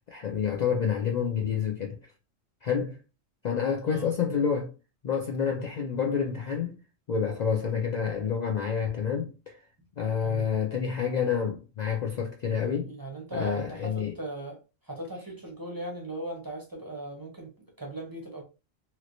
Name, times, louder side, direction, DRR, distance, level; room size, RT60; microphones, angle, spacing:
voice 1, 0.1-2.0 2.6-3.0 3.4-4.7 5.0-6.7 7.1-9.6 10.0-12.9 13.3-14.1, left 7 dB, 85° left, 0.3 m, -28 dB
voice 2, 12.9-14.6 14.8-17.5 17.8-18.4, right 2 dB, 20° right, 0.6 m, -38 dB
3.1 x 2.9 x 2.5 m
omnidirectional pair, 1.3 m